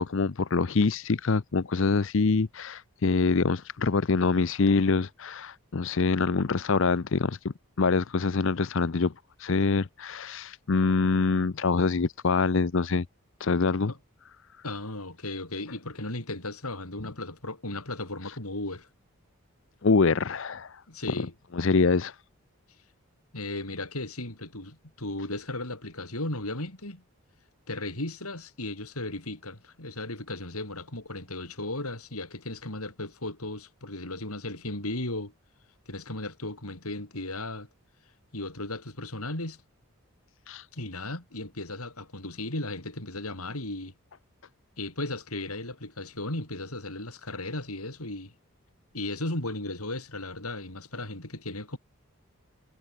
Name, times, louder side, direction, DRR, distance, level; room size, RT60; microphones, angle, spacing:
voice 1, 0.0-7.4 7.8-9.1 9.4-13.1 13.4-13.9 19.8-20.8 21.5-22.2 40.5-40.7, left 4 dB, 60° left, 0.6 m, -25 dB
voice 2, 14.6-18.9 20.9-21.3 23.3-27.0 27.7-35.3 35.9-37.7 38.3-39.6 40.7-43.9 44.8-48.3 48.9-51.8, left 2 dB, 85° left, 6.3 m, -35 dB
head